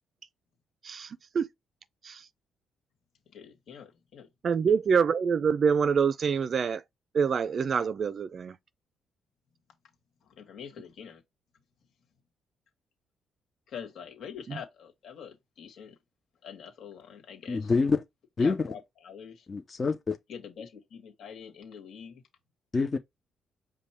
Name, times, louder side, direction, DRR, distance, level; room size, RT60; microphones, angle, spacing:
voice 1, 0.8-1.5 2.0-2.2 4.4-6.8 7.1-8.5 14.5-14.6, right 6 dB, 50° right, 0.4 m, -26 dB
voice 2, 3.3-4.3 4.7-4.8 10.3-11.2 13.7-15.9 16.4-17.7 18.4-19.4 20.3-22.2, left 7 dB, 70° left, 1.7 m, -45 dB
voice 3, 17.5-18.0 18.4-18.7 19.5-20.2 22.7-23.0, left 4 dB, 35° left, 0.7 m, -26 dB
5.2 x 2.2 x 4.3 m
cardioid pair, 90°, 0 cm